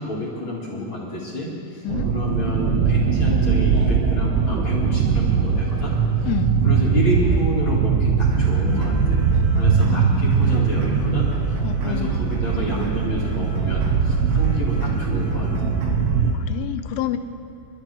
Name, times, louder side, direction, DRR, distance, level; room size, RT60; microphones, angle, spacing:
voice 1, 0.0-1.8 2.1-6.3 6.6-9.2 9.5-11.6 11.8-15.7, left 1 dB, 45° left, -5 dB, 1.6 m, -29 dB
sound 1, 1.9-16.4, right 5 dB, 85° right, 3.6 m, -20 dB
sound 2, 8.3-16.3, right 2 dB, 65° right, 2.8 m, -36 dB
voice 2, 9.8-10.8 11.6-12.2 16.3-17.2, left 11 dB, 80° left, 8 dB, 3.1 m, -29 dB
29.5 x 12.0 x 3.4 m, 2.7 s
omnidirectional pair, 5.7 m